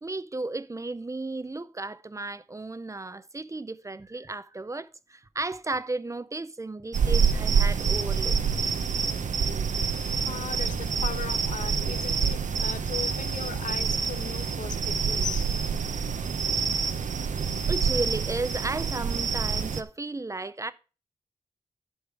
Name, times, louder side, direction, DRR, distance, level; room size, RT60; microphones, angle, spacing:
voice 1, 0.0-8.4 17.7-20.7, right 2 dB, 25° right, 0.5 m, -34 dB
sound 1, 6.9-19.8, right 6 dB, 65° right, 0.7 m, -27 dB
voice 2, 9.9-15.5, left 7 dB, 70° left, 0.6 m, -38 dB
10.5 x 5.5 x 4.7 m
wide cardioid pair, 105°, 14 cm